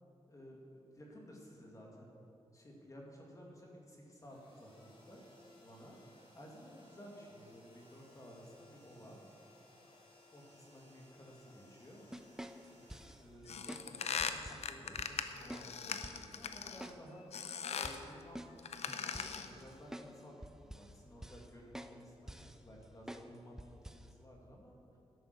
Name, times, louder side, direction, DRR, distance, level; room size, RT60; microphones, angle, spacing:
voice 1, 0.3-2.2 2.5-5.2 5.6-9.2 9.8-10.0 10.3-12.1 12.7-17.3 17.8-18.5 19.1-25.0, equal, 30° left, -1 dB, 2.1 m, -55 dB
sound 1, 4.1-14.1, left 1 dB, 55° left, 3.2 m, -63 dB
sound 2, 12.1-13.2 13.7-13.9 14.2-14.7 15.0-15.1 15.5-15.7 16.0-16.3 16.8-17.0 17.3-17.4 17.8-20.1 20.4-20.9 21.2-21.5 21.7-22.0 22.3-22.6 23.1-23.3 23.6-24.1, right 1 dB, 5° right, 0.4 m, -48 dB
sound 3, 13.5-16.9 17.3-18.0 18.6-19.6, left 6 dB, 75° left, 0.6 m, -40 dB
11.0 x 8.5 x 6.6 m, 2.7 s
wide cardioid pair, 155°, 11 cm